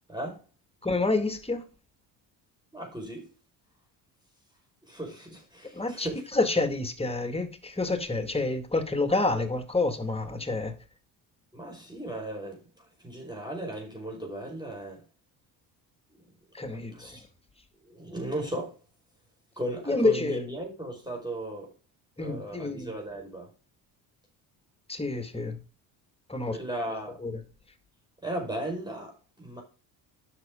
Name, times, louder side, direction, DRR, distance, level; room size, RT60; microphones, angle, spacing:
voice 1, 0.1-0.4 2.7-3.3 4.8-6.2 11.5-15.0 16.2-16.3 16.7-17.3 17.8-18.8 19.6-21.7 22.2-23.5 26.5-27.2 28.2-29.6, right 1 dB, 10° right, 5.1 m, -36 dB
voice 2, 0.8-1.6 5.7-6.1 6.3-10.7 16.5-17.2 19.9-20.4 22.2-22.9 24.9-25.6 26.3-26.6 27.2-27.3, left 3 dB, 10° left, 2.2 m, -28 dB
10.5 x 6.5 x 3.8 m
hypercardioid pair, 60°, 50 cm